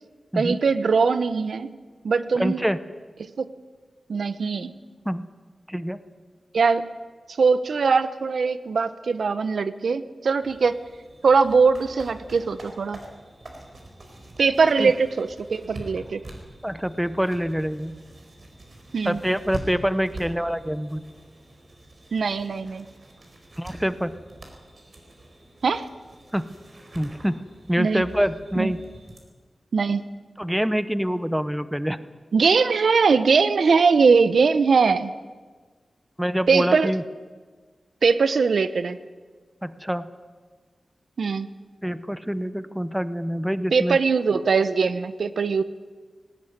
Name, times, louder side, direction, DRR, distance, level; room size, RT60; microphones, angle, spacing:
voice 1, 0.4-1.7 2.0-2.6 3.4-3.5 4.1-4.7 6.5-6.9 7.4-10.7 11.2-13.0 14.4-16.2 18.9-19.2 22.1-22.8 25.6-25.9 27.8-28.0 28.6-28.7 29.7-30.0 32.3-35.1 36.5-36.9 38.0-39.0 41.2-41.5 43.7-45.6, right 5 dB, 80° right, 13 dB, 0.9 m, -21 dB
voice 2, 2.4-2.8 5.0-5.3 5.7-6.0 14.8-14.9 16.6-18.0 19.0-21.0 23.6-24.2 26.3-26.5 26.9-27.4 27.7-28.8 30.4-32.0 36.2-37.0 39.6-40.1 41.8-44.0, equal, 5° right, 13 dB, 0.8 m, -25 dB
sound 1, 10.4-29.2, right 1 dB, 45° right, 4.5 m, -44 dB
19.0 x 18.5 x 9.4 m, 1.4 s
wide cardioid pair, 115°, 0 cm